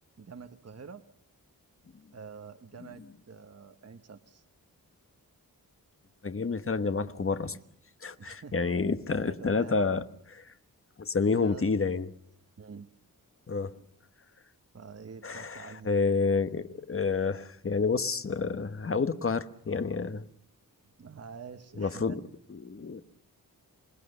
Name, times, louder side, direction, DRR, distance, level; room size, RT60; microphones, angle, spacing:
voice 1, 0.2-1.0 2.1-4.4 8.2-8.5 9.2-9.8 11.4-11.6 12.6-12.9 14.7-15.9 21.0-22.2, right 5 dB, 45° right, 9 dB, 1.2 m, -46 dB
voice 2, 6.2-7.6 8.0-10.0 10.3-10.5 11.0-12.1 13.5-13.7 15.2-20.2 21.8-22.2 22.5-23.0, left 4 dB, 35° left, 11 dB, 1.2 m, -29 dB
27.5 x 20.0 x 6.8 m, 0.73 s
wide cardioid pair, 105°, 36 cm